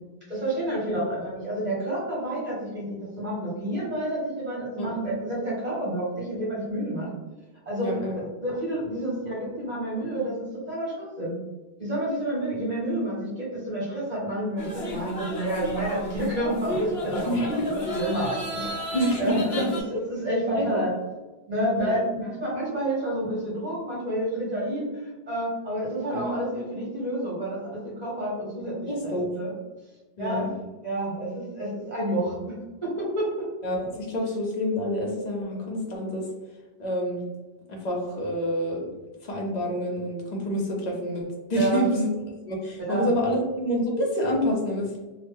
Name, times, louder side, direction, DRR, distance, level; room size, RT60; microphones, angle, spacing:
voice 1, 0.3-7.1 7.6-7.9 8.4-11.3 11.8-19.6 19.9-20.9 21.5-24.9 25.3-29.5 30.2-30.5 30.8-32.4 32.8-33.4 41.5-41.8 42.8-43.1, right 1 dB, 40° right, -6 dB, 1.6 m, -29 dB
voice 2, 7.8-8.2 17.3-17.7 18.9-19.6 20.5-20.8 21.8-21.9 26.1-26.4 28.9-29.3 30.2-30.5 33.6-36.2 36.8-37.2 37.7-38.8 39.2-41.2 41.5-45.0, equal, 45° left, -1 dB, 0.8 m, -27 dB
sound 1, 14.6-19.8, left 1 dB, 75° left, 1.1 m, -33 dB
3.1 x 2.4 x 3.4 m, 1.2 s
omnidirectional pair, 1.1 m